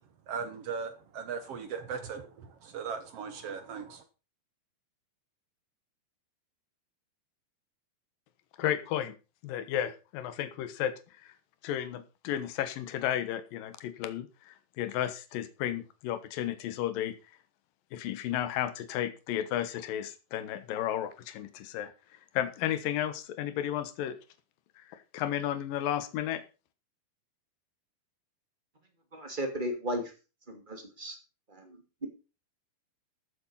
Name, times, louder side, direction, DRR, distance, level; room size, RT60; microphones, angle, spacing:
voice 1, 0.3-4.0, right 6 dB, 75° right, 8 dB, 1.4 m, -38 dB
voice 2, 8.6-9.1 9.4-10.9 11.2-11.3 11.6-17.1 17.9-21.9 22.3-24.2 24.8-26.4, left 11 dB, 70° left, 11 dB, 2.8 m, -33 dB
voice 3, 29.1-30.1 30.5-31.2 31.5-32.1, equal, 15° right, 4 dB, 2.1 m, -35 dB
14.0 x 7.7 x 5.6 m, 0.33 s
omnidirectional pair, 4.5 m